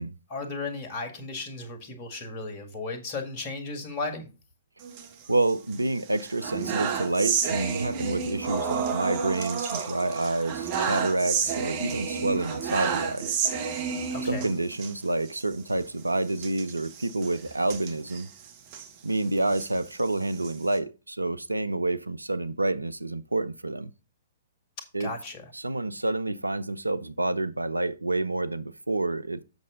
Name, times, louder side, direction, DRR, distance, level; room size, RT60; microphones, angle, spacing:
voice 1, 0.3-4.3 14.1-14.5 25.0-25.4, left 3 dB, 30° left, 2.2 m, -35 dB
sound 1, 4.8-5.8 6.1-14.9 15.3-15.4 15.7-15.8 16.4-18.9 19.4-20.8, right 6 dB, 35° right, 1.5 m, -31 dB
voice 2, 5.3-13.3 14.3-18.3 19.0-23.9 24.9-25.1 25.5-29.4, right 2 dB, 80° right, 0.6 m, -28 dB
8.0 x 6.4 x 3.9 m
figure-of-eight pair, 115°, 0 cm